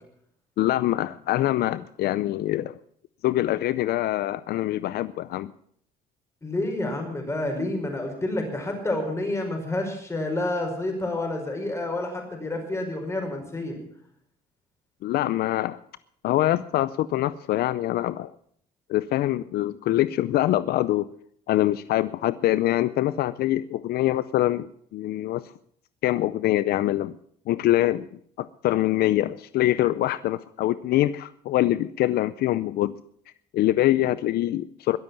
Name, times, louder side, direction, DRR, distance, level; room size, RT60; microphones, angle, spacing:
voice 1, 0.6-2.7 3.2-5.5 15.0-15.8 16.2-18.3 18.9-21.1 21.5-25.5 26.0-27.2 27.5-28.1 28.4-33.0 33.5-35.0, left 14 dB, 70° left, 16 dB, 0.5 m, -24 dB
voice 2, 6.4-13.8, left 2 dB, 15° left, 3 dB, 5.2 m, -29 dB
21.5 x 7.7 x 7.1 m, 0.65 s
cardioid pair, 110°, 17 cm